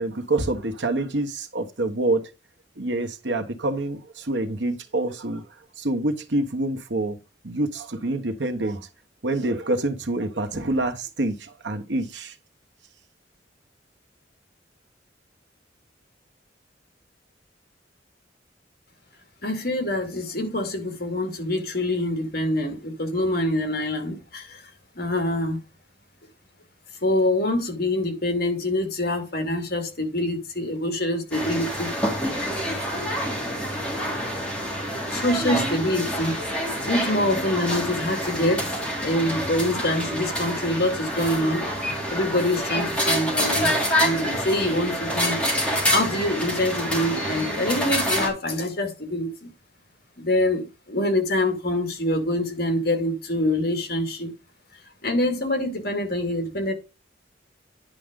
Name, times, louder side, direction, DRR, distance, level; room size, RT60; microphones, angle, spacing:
voice 1, 0.0-2.3 2.8-5.4 5.8-7.2 7.4-8.8 9.2-12.3, right 2 dB, 75° right, 1.3 m, -26 dB
voice 2, 19.4-24.7 25.0-25.6 27.0-31.9 32.7-32.9 35.1-36.4 36.8-41.6 42.1-43.7 44.0-45.4 45.9-49.5 50.2-54.3 55.0-56.7, left 1 dB, 55° left, 2.3 m, -25 dB
sound 1, 31.3-48.3, equal, 5° left, 2.9 m, -27 dB
10.5 x 5.0 x 3.7 m
head